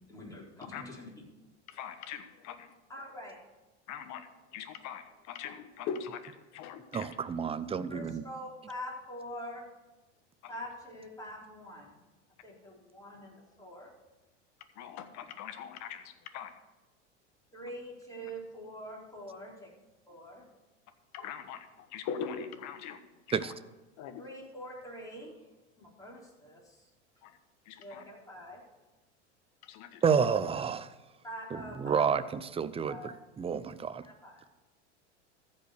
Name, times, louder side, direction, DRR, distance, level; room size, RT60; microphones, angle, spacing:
voice 1, 0.1-1.1 2.9-3.4 7.9-9.6 10.5-12.0 12.4-13.9 17.5-19.7 20.1-20.5 24.2-25.4 25.8-26.9 27.8-28.6 31.2-32.3 32.9-33.2 34.0-34.4, equal, 10° left, -4 dB, 4.2 m, -45 dB
voice 2, 1.7-2.5 3.9-7.2 14.8-16.5 21.1-23.0 23.3-23.5 24.0-24.2 27.2-27.4 27.7-28.0 29.6-30.0, left 7 dB, 50° left, 9 dB, 1.4 m, -41 dB
voice 3, 6.9-8.2 23.3-23.5 30.0-30.9 31.8-32.2 32.5-34.0, right 6 dB, 15° right, 14 dB, 0.5 m, -29 dB
14.5 x 5.4 x 6.7 m, 1.1 s
hypercardioid pair, 100°, 35 cm